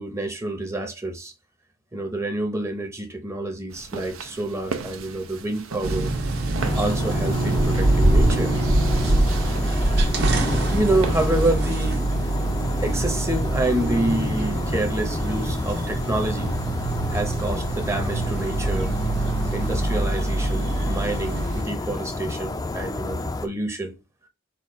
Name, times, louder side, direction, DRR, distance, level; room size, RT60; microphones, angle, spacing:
voice 1, 0.0-1.3 1.9-6.1 6.7-8.6 10.7-12.0 12.8-16.5 17.1-18.9 19.5-24.0, right 1 dB, 15° right, 0.7 m, -28 dB
sound 1, 3.7-11.6, right 4 dB, 85° right, 0.7 m, -36 dB
sound 2, 5.8-21.6, right 2 dB, 55° right, 1.0 m, -24 dB
sound 3, 6.6-23.5, left 2 dB, 20° left, 0.4 m, -30 dB
4.2 x 2.3 x 4.7 m
head